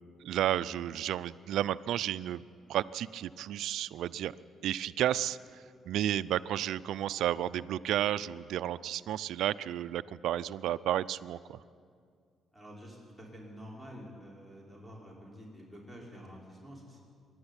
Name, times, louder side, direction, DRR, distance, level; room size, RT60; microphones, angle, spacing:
voice 1, 0.2-2.4 2.7-4.3 4.6-5.4 5.9-11.6, right 12 dB, 80° right, 14 dB, 0.5 m, -32 dB
voice 2, 12.5-17.0, equal, ahead, -4 dB, 5.3 m, -48 dB
25.0 x 11.5 x 9.9 m, 2.2 s
cardioid pair, 90°, 0 cm